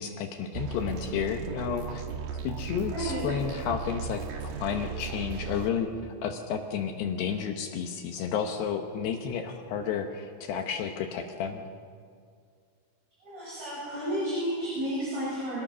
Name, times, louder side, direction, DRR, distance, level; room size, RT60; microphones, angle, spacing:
voice 1, 0.0-2.0 2.4-11.6, left 7 dB, 75° left, 5 dB, 2.6 m, -32 dB
sound 1, 0.5-5.7, right 6 dB, 70° right, 2.1 m, -36 dB
voice 2, 2.9-3.3 13.2-15.6, equal, 50° right, -7 dB, 8.8 m, -32 dB
26.0 x 19.5 x 6.2 m, 2.1 s
omnidirectional pair, 5.8 m